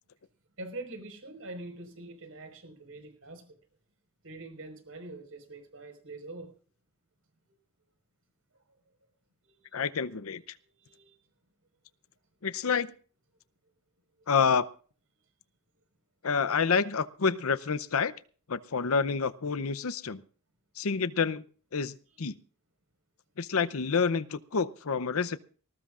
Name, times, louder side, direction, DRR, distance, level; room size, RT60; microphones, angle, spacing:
voice 1, 0.6-3.4 4.2-6.5 9.4-9.5 10.8-11.1, right 2 dB, 65° right, 6 dB, 5.0 m, -44 dB
voice 2, 9.7-10.6 12.4-12.9 14.3-14.6 16.2-18.1 18.5-20.2 20.8-21.4 21.7-22.4 23.4-25.4, left 5 dB, 70° left, 16 dB, 0.7 m, -28 dB
20.0 x 18.5 x 2.5 m, 0.40 s
head